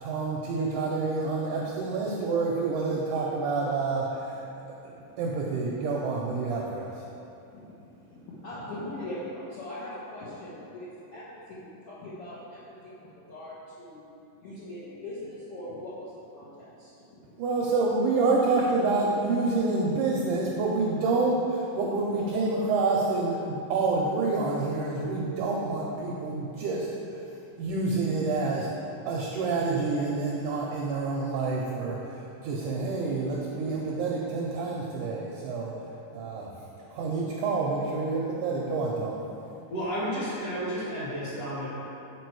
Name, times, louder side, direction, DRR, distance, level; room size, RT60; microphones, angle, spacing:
voice 1, 0.0-4.4 4.8-6.9 17.4-26.9 27.6-28.7 29.1-35.7 36.1-36.5 36.9-39.2, right 3 dB, 80° right, -3 dB, 1.8 m, -28 dB
voice 2, 8.1-14.0 14.4-17.2, left 1 dB, 80° left, -10 dB, 1.3 m, -41 dB
voice 3, 39.7-41.7, equal, 50° left, -9 dB, 2.5 m, -32 dB
6.8 x 5.2 x 4.6 m, 2.9 s
omnidirectional pair, 4.2 m